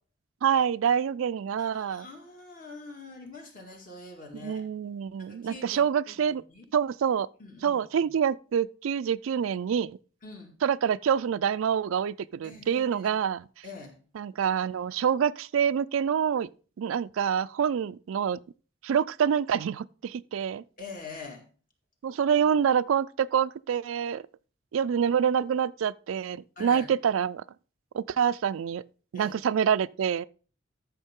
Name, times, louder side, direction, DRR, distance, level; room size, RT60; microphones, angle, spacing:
voice 1, 0.4-2.1 4.3-6.4 6.7-7.3 7.6-10.0 10.6-13.5 14.1-16.5 16.8-18.4 18.8-20.6 22.0-24.2 24.7-27.4 27.9-28.8 29.1-30.3, right 8 dB, 90° right, 0.4 m, -26 dB
voice 2, 1.6-4.7 5.2-5.8 6.1-6.7 7.4-8.1 10.2-10.6 12.4-13.2 13.6-13.9 20.8-21.4 26.6-26.9 29.1-29.4, left 3 dB, 45° left, 2.0 m, -45 dB
13.5 x 6.1 x 3.6 m
head